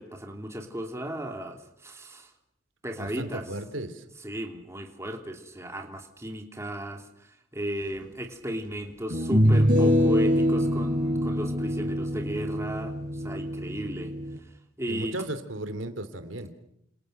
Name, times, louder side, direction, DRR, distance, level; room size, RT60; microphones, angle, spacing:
voice 1, 0.0-2.3 2.8-3.5 4.2-14.1 14.8-15.2, equal, 15° right, 4 dB, 2.9 m, -35 dB
voice 2, 3.0-4.0 14.9-16.5, right 1 dB, 85° right, 10 dB, 2.9 m, -35 dB
sound 1, 8.0-8.1 9.1-14.4, equal, 45° right, 7.0 m, -24 dB
29.0 x 27.5 x 6.6 m, 0.75 s
head